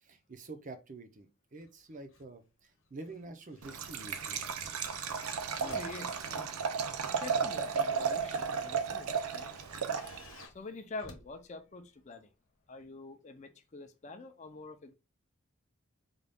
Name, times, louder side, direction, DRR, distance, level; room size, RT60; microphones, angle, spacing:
voice 1, 0.0-4.4, right 2 dB, 35° right, 0.5 m, -47 dB
sound 1, 1.6-2.3 2.6-12.0 12.8-12.9, left 3 dB, 65° left, 0.9 m, -56 dB
Liquid, 3.6-10.5, right 6 dB, 85° right, 0.5 m, -34 dB
voice 2, 5.4-6.2 7.1-9.5 10.5-12.3 12.7-14.9, left 3 dB, 35° left, 0.5 m, -46 dB
3.9 x 2.4 x 3.4 m
head